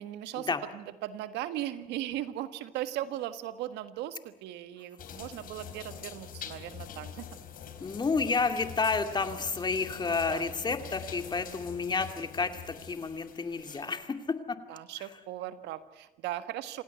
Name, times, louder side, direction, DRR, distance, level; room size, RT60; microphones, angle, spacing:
voice 1, 0.0-7.3 10.1-10.8 14.7-16.8, right 13 dB, 90° right, 12 dB, 1.6 m, -38 dB
sound 1, 5.0-14.1, left 8 dB, 55° left, 3.9 m, -45 dB
voice 2, 7.8-14.6, left 4 dB, 25° left, 8 dB, 2.4 m, -30 dB
27.5 x 17.5 x 9.5 m, 1.0 s
cardioid pair, 110°, 17 cm